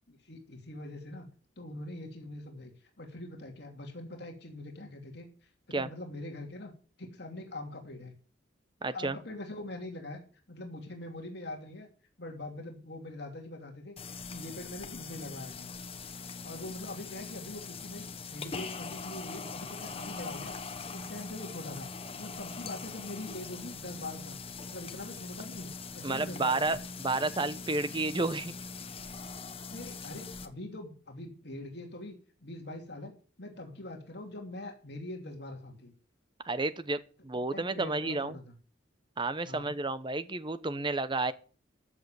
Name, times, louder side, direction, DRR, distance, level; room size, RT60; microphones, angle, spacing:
voice 1, 0.1-1.3 1.6-6.7 7.0-8.2 8.9-10.2 10.5-11.9 12.2-14.0 14.3-15.7 16.4-20.5 20.9-24.4 24.7-26.8 27.1-27.2 27.5-27.6 29.7-33.1 33.4-35.9 37.5-38.4 39.5-39.7, left 1 dB, 60° left, 2.9 m, -43 dB
voice 2, 8.8-9.2 26.0-28.5 36.4-38.4 39.2-41.3, right 3 dB, 25° right, 0.9 m, -31 dB
sound 1, 14.0-30.5, left 4 dB, 30° left, 1.2 m, -42 dB
14.5 x 7.7 x 7.0 m
head